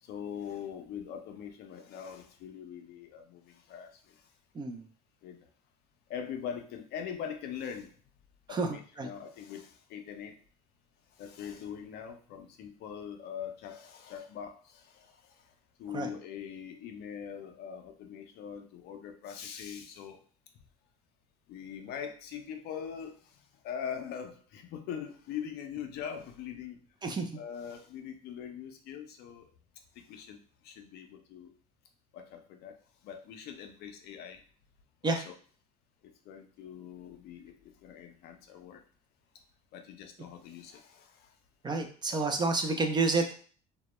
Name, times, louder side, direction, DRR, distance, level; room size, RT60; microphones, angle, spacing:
voice 1, 0.0-4.3 5.2-5.4 6.1-7.9 8.5-10.4 11.1-15.5 15.8-20.2 21.5-26.8 27.3-29.5 29.9-31.5 32.1-32.8 33.0-34.4 35.0-35.3 36.3-38.8 39.7-41.3 42.1-42.4, left 8 dB, 60° left, 5 dB, 0.5 m, -42 dB
voice 2, 4.5-4.9 8.5-9.1 15.9-16.1 27.0-27.4 35.0-35.2 41.6-43.4, right 3 dB, 25° right, 4 dB, 0.4 m, -30 dB
2.1 x 2.0 x 2.9 m, 0.43 s
hypercardioid pair, 80°, 19 cm